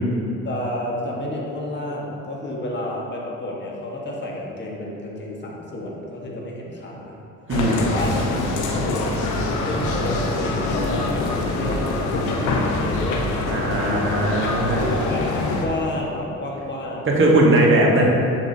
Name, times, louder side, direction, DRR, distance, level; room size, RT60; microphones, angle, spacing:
voice 1, 0.4-7.2 7.7-9.3 9.7-14.2 14.7-17.6, left 1 dB, 35° left, -3 dB, 1.5 m, -31 dB
sound 1, 7.5-15.7, left 2 dB, 85° left, 0.9 m, -24 dB
voice 2, 7.5-7.9 13.5-14.9 17.0-18.1, right 1 dB, 40° right, -2 dB, 1.4 m, -18 dB
7.1 x 7.1 x 2.8 m, 2.9 s
cardioid pair, 90°, 30 cm